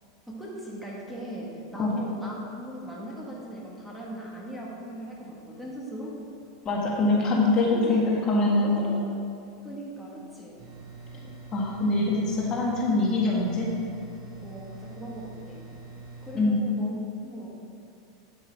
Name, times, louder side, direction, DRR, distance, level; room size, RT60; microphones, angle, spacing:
voice 1, 0.3-6.2 7.6-8.2 8.6-9.0 9.6-10.6 14.4-15.6 16.2-17.6, right 1 dB, ahead, -5 dB, 1.5 m, -39 dB
voice 2, 6.6-8.8 11.5-13.7 16.3-16.6, left 2 dB, 30° left, -3 dB, 1.5 m, -24 dB
sound 1, 10.6-16.4, right 3 dB, 50° right, 1.4 m, -45 dB
8.7 x 7.9 x 3.5 m, 2.5 s
supercardioid pair, 130°, 2 cm